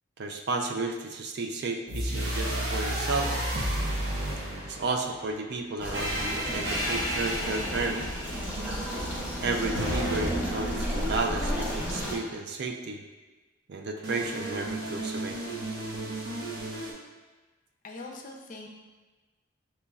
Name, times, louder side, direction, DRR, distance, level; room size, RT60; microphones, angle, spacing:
voice 1, 0.2-3.3 4.6-8.2 8.9-9.0 9.4-13.0 13.7-15.4, right 3 dB, 55° right, 3 dB, 0.4 m, -32 dB
sound 1, 1.9-5.2 5.9-8.5 9.7-11.8 14.0-16.9, right 1 dB, 85° right, 0.9 m, -32 dB
sound 2, 5.8-12.1, equal, 10° right, 0.9 m, -32 dB
voice 2, 17.8-18.7, left 2 dB, 40° left, 1 dB, 0.5 m, -42 dB
6.6 x 3.0 x 2.3 m, 1.3 s
head